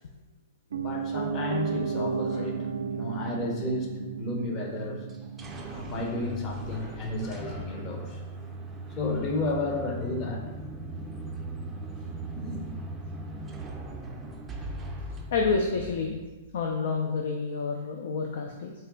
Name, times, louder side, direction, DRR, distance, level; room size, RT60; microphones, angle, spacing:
voice 1, 0.7-5.1 5.7-8.2 8.9-10.4 12.3-12.6, left 2 dB, 35° left, 1 dB, 0.8 m, -32 dB
Piano, 0.7-10.7 11.0-11.1, right 6 dB, 80° right, 0.3 m, -35 dB
sound 1, 5.1-16.7, right 1 dB, 15° right, 0.4 m, -39 dB
voice 2, 15.3-16.2 16.5-18.7, left 4 dB, 70° left, 2 dB, 0.4 m, -28 dB
4.1 x 2.2 x 3.7 m, 1.2 s
hypercardioid pair, 125°, 0 cm